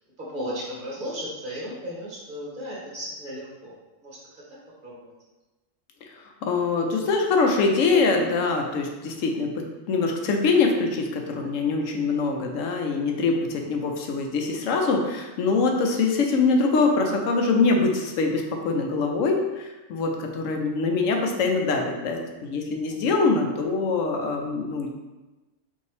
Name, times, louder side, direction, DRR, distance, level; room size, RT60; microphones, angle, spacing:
voice 1, 0.2-3.8 4.0-4.4 4.8-5.1, equal, 40° right, -6 dB, 1.4 m, -35 dB
voice 2, 6.0-24.9, left 4 dB, 85° left, 2 dB, 1.0 m, -24 dB
5.3 x 2.7 x 3.3 m, 1.1 s
omnidirectional pair, 1.3 m